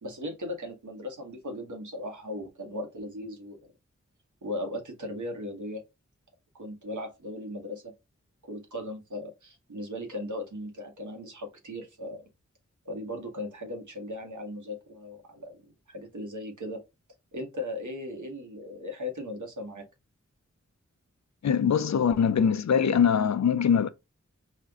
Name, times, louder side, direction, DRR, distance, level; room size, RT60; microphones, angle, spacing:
voice 1, 0.0-3.6 4.4-5.8 6.6-7.9 8.5-12.3 12.8-15.6 15.9-16.8 17.3-19.9, left 1 dB, 85° right, 1.3 m, -37 dB
voice 2, 21.4-23.9, left 7 dB, 65° left, 0.5 m, -23 dB
4.4 x 2.5 x 3.5 m
cardioid pair, 40°, 29 cm